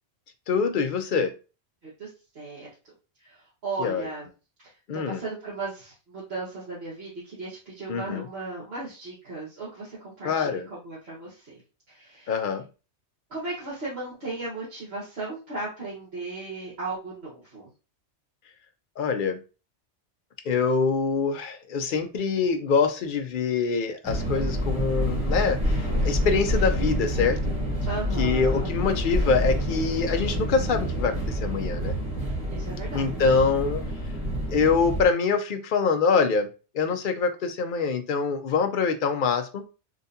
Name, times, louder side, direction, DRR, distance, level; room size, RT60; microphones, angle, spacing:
voice 1, 0.5-1.3 3.8-4.1 4.9-5.2 7.9-8.2 10.2-10.7 12.3-12.6 19.0-19.4 20.5-27.4 28.2-32.0 32.9-33.8 34.5-36.5 36.7-39.6, left 5 dB, 60° left, 7 dB, 0.6 m, -25 dB
voice 2, 2.3-2.7 3.2-4.3 4.6-11.6 11.9-12.4 13.3-17.7 27.8-28.7 32.5-33.5, right 3 dB, 60° right, -8 dB, 1.5 m, -36 dB
sound 1, 24.0-35.1, equal, 5° right, 1.4 m, -27 dB
3.9 x 2.3 x 2.7 m, 0.33 s
omnidirectional pair, 1.2 m